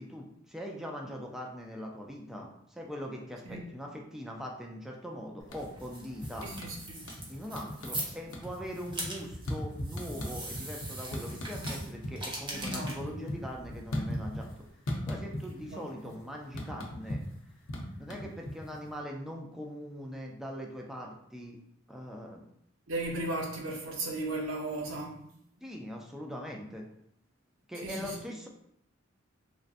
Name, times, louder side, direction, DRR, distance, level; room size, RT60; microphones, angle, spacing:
voice 1, 0.0-6.5 7.3-14.5 15.0-17.2 18.0-21.6 21.9-22.5 25.6-26.9 27.7-28.5, equal, ahead, -1 dB, 0.3 m, -41 dB
sound 1, 5.4-5.9 6.2-7.3 7.5-8.0 8.3-12.2 12.5-14.5 14.9-15.7 16.0-18.9, equal, 70° left, 0.6 m, -37 dB
sound 2, 5.5-14.7, right 1 dB, 25° right, 0.7 m, -42 dB
voice 2, 6.4-7.0 12.5-13.2 15.6-15.9 22.9-25.2 27.8-28.2, right 2 dB, 80° right, 0 dB, 0.7 m, -36 dB
3.1 x 2.6 x 2.5 m, 0.72 s
head